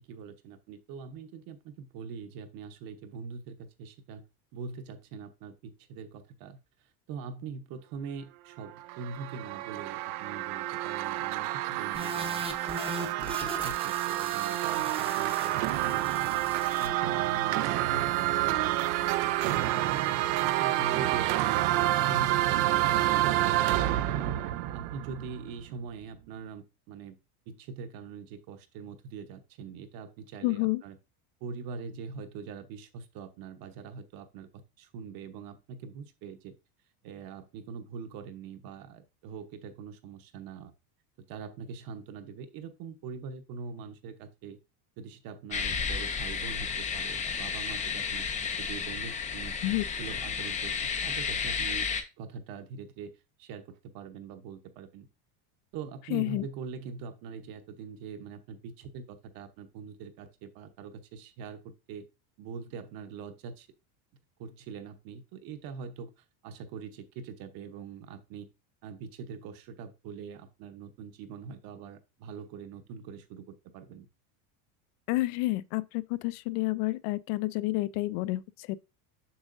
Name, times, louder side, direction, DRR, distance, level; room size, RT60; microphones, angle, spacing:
voice 1, 0.1-4.2 4.5-12.5 13.2-16.4 16.8-21.6 22.0-23.7 24.1-27.2 27.5-31.0 31.4-36.5 37.0-40.7 41.2-44.6 45.0-48.3 48.6-49.6 50.0-55.1 55.7-62.0 62.4-63.7 64.4-68.5 68.8-74.1, right 5 dB, 50° right, 1.0 m, -43 dB
sound 1, 8.6-25.6, right 15 dB, 80° right, 0.7 m, -28 dB
sound 2, 11.9-16.9, right 3 dB, 10° right, 0.7 m, -39 dB
voice 2, 30.4-30.8 49.6-49.8 56.1-56.5 75.1-78.8, left 19 dB, 65° left, 0.5 m, -29 dB
sound 3, 45.5-52.0, left 6 dB, 15° left, 0.4 m, -32 dB
7.1 x 6.2 x 2.6 m
cardioid pair, 155°, 45 cm